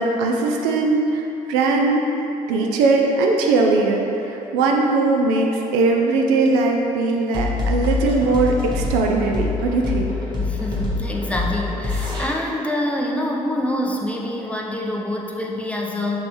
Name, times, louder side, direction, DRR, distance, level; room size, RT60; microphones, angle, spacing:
voice 1, 0.0-2.1 2.5-10.1, right 3 dB, 65° right, 1 dB, 0.4 m, -20 dB
sound 1, 7.3-12.2, left 3 dB, 25° right, 1.2 m, -24 dB
voice 2, 10.4-16.3, left 1 dB, 5° left, -2 dB, 0.5 m, -26 dB
4.0 x 3.4 x 3.0 m, 3.0 s
figure-of-eight pair, 45°, 18 cm